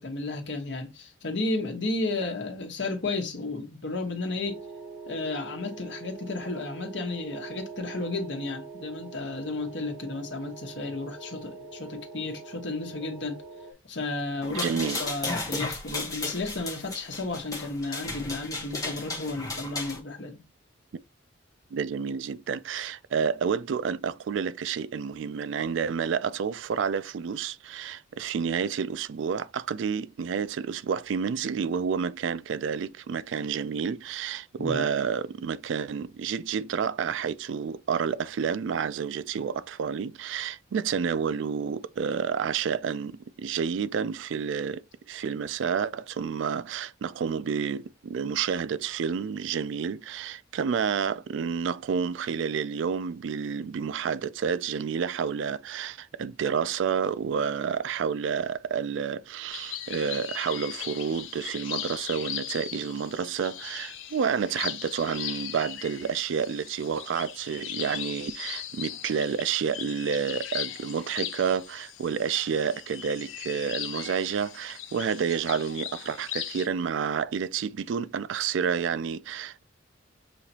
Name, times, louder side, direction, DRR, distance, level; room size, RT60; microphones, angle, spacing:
voice 1, 0.0-4.6 5.1-13.4 13.8-20.4 34.6-34.9, left 2 dB, 65° left, 1.1 m, -33 dB
sound 1, 4.4-13.7, right 4 dB, 15° right, 0.7 m, -43 dB
sound 2, 14.4-20.0, left 2 dB, 20° left, 1.0 m, -34 dB
voice 2, 14.5-15.0 21.7-79.6, right 6 dB, 75° right, 0.3 m, -29 dB
sound 3, 59.5-76.7, left 10 dB, 80° left, 0.7 m, -38 dB
6.2 x 2.9 x 2.8 m
head